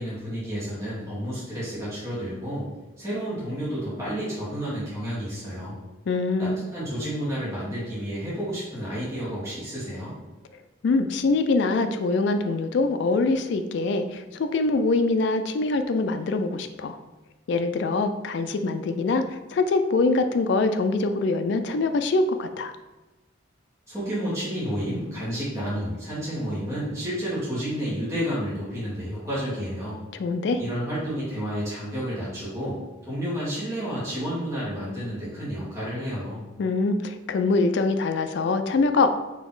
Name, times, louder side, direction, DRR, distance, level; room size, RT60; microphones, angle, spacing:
voice 1, 0.0-2.7 3.0-5.8 6.4-10.1 23.9-30.0 30.6-32.8 33.0-36.4, equal, 15° right, -9 dB, 1.4 m, -30 dB
voice 2, 6.1-6.6 10.8-17.0 17.5-22.7 30.2-30.6 36.6-39.1, left 3 dB, 60° left, 7 dB, 0.3 m, -24 dB
4.1 x 2.8 x 3.9 m, 1.1 s
head